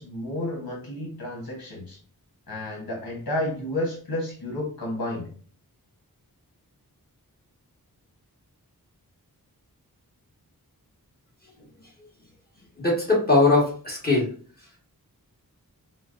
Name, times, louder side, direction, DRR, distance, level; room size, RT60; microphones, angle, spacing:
voice 1, 0.0-2.0 2.5-5.3 11.6-11.7, left 1 dB, 70° left, -2 dB, 1.2 m, -31 dB
voice 2, 12.8-14.3, left 2 dB, 25° left, -4 dB, 1.5 m, -20 dB
4.3 x 2.0 x 2.5 m, 0.43 s
wide cardioid pair, 65°, 37 cm